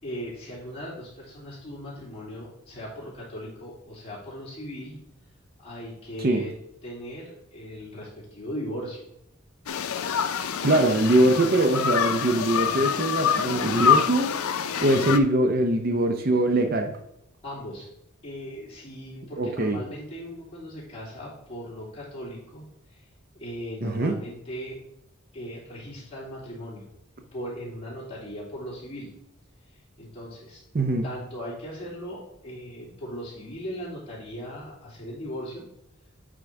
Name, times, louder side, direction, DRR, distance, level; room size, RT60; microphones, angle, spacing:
voice 1, 0.0-5.0 5.6-6.5 6.8-9.0 17.4-17.9 18.2-23.0 23.3-24.8 25.3-26.9 27.3-29.1 30.0-30.6 31.0-35.7, equal, 25° left, -7 dB, 3.0 m, -38 dB
sound 1, 9.7-15.2, left 7 dB, 85° left, 0.5 m, -26 dB
voice 2, 10.6-14.3 14.8-17.0 19.4-19.8 23.8-24.1 30.7-31.0, right 1 dB, 45° right, 5 dB, 0.6 m, -22 dB
8.5 x 3.7 x 4.6 m, 0.79 s
head